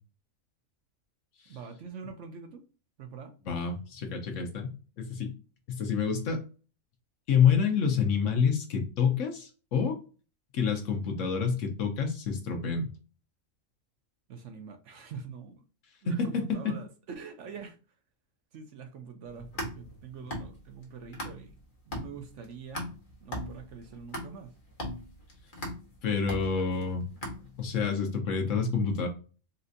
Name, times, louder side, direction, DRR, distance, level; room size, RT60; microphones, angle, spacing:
voice 1, 1.5-2.6 3.0-3.3 14.3-15.7 16.0-17.8 18.5-21.5 21.9-22.9 23.2-24.5, right 6 dB, 65° right, 0.9 m, -44 dB
voice 2, 3.5-4.7 5.0-5.3 5.7-6.4 7.3-10.0 10.5-12.9 16.1-16.5 26.0-27.0 27.6-29.1, left 6 dB, 65° left, 1.0 m, -27 dB
sound 1, 19.3-21.6 21.9-27.8, equal, 40° left, 1.1 m, -39 dB
4.1 x 2.4 x 2.6 m
omnidirectional pair, 1.5 m